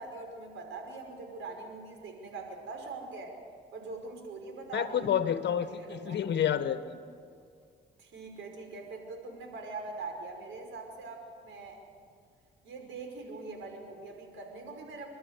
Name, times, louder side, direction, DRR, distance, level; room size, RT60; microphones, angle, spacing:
voice 1, 0.0-3.4 3.7-5.3 5.6-6.2 8.0-11.8 12.6-15.1, right 3 dB, 75° right, 4 dB, 5.4 m, -42 dB
voice 2, 4.7-7.0, left 9 dB, 60° left, 10 dB, 1.5 m, -29 dB
30.0 x 12.5 x 8.4 m, 2.2 s
cardioid pair, 90°, 20 cm